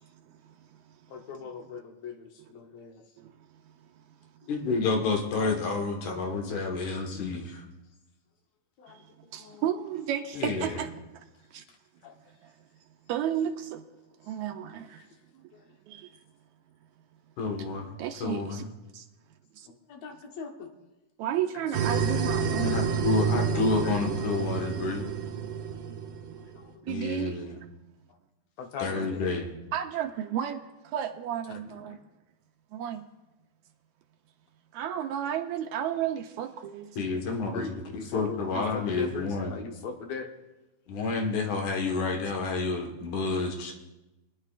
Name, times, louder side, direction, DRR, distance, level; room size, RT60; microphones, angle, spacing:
voice 1, 0.0-1.0 3.2-4.3 8.9-11.2 11.5-11.6 12.4-12.5 13.1-13.9 14.2-15.0 15.9-16.2 18.0-18.6 18.9-19.1 19.6-19.7 21.2-23.1 26.8-27.4 29.7-32.0 32.7-33.1 34.7-36.9, right 10 dB, 80° right, 1.9 m, -33 dB
voice 2, 1.1-3.0 4.4-4.5 5.3-5.6 6.9-7.4 8.8-9.0 9.4-9.7 10.5-10.7 11.7-11.8 12.0-12.2 14.2-14.3 15.0-15.1 15.5-15.7 19.7-20.7 21.5-22.0 23.5-24.4 26.4-27.0 28.1-28.2 28.6-29.3 31.5-32.0 37.4-40.3, left 5 dB, 70° left, 2.1 m, -41 dB
voice 3, 4.5-7.6 10.4-10.8 17.4-17.9 18.2-18.7 22.6-25.1 26.9-27.5 28.8-29.5 37.0-37.7 38.1-39.5 40.9-43.7, left 4 dB, 85° left, 3.0 m, -29 dB
sound 1, 21.7-26.6, right 6 dB, 65° right, 1.5 m, -29 dB
23.5 x 10.5 x 2.5 m
omnidirectional pair, 3.4 m